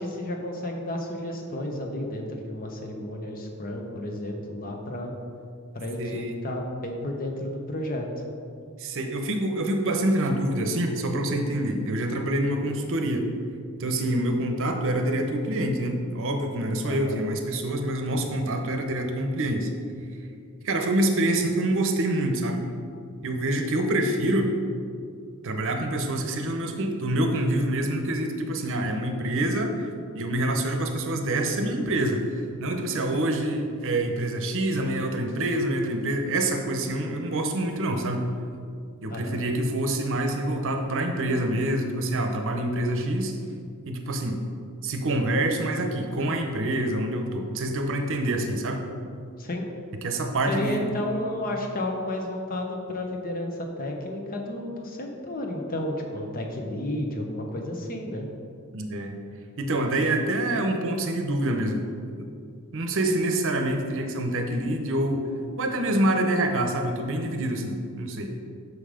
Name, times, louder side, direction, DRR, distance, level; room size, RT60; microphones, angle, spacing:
voice 1, 0.0-5.1 5.7-8.0 16.9-17.2 39.1-39.4 49.4-49.6 50.5-58.3, left 1 dB, 40° left, 2 dB, 0.9 m, -32 dB
voice 2, 6.0-6.4 8.8-13.3 13.8-19.7 20.6-22.6 23.2-24.5 25.4-29.9 30.1-38.3 39.0-43.3 43.9-44.4 44.8-48.9 50.0-50.8 58.7-59.2 59.6-61.8 62.2-62.3 62.7-65.2 65.6-68.3, right 1 dB, 60° right, 5 dB, 0.8 m, -26 dB
6.2 x 5.6 x 5.0 m, 2.3 s
head